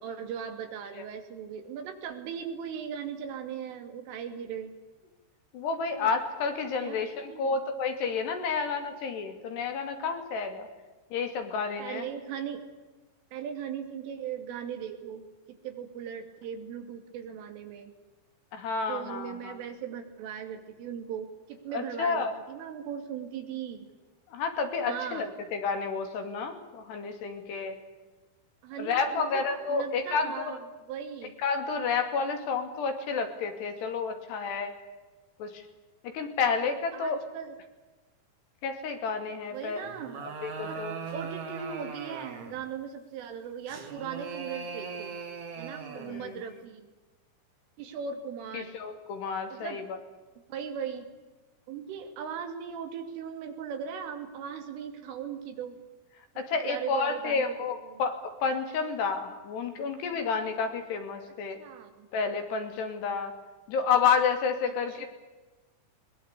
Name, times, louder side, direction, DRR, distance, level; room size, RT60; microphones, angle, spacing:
voice 1, 0.0-4.7 6.0-6.1 6.8-7.6 11.8-12.6 13.3-17.9 18.9-23.9 24.8-25.3 28.6-31.3 36.9-37.6 39.5-40.3 40.6-40.8 41.1-45.2 45.6-46.9 47.8-48.7 49.5-49.8 50.5-51.1 51.7-55.8 56.6-57.5 57.9-58.0 61.6-62.1 64.7-65.1, right 7 dB, 90° right, 6 dB, 5.1 m, -38 dB
voice 2, 5.5-10.7 11.1-12.1 18.5-19.6 21.7-22.3 24.3-27.8 28.8-30.6 31.4-34.8 35.4-35.6 36.0-37.2 38.6-39.9 40.2-40.9 46.0-46.4 48.5-49.8 56.4-61.6 62.1-63.3 63.7-65.1, left 5 dB, 65° left, 6 dB, 4.4 m, -30 dB
sound 1, 39.8-42.7 43.7-46.3, right 5 dB, 45° right, 3.4 m, -39 dB
22.0 x 22.0 x 8.3 m, 1.2 s
omnidirectional pair, 5.5 m